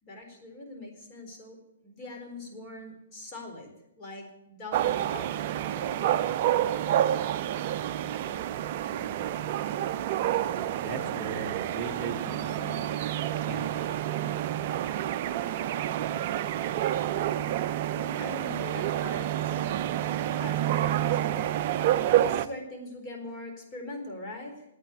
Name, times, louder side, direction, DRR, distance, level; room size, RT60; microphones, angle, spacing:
voice 1, 0.0-1.6 1.8-3.7 4.0-5.3 5.7-6.2 17.9-21.4 22.2-24.6, left 1 dB, 30° left, 1 dB, 4.1 m, -42 dB
sound 1, 4.7-22.5, right 11 dB, 40° right, 0.5 m, -28 dB
voice 2, 8.8-9.3 10.1-12.8 13.5-14.0 14.3-14.9, right 4 dB, 15° right, -2 dB, 1.7 m, -40 dB
9.3 x 9.1 x 9.7 m, 0.89 s
figure-of-eight pair, 125°, 0 cm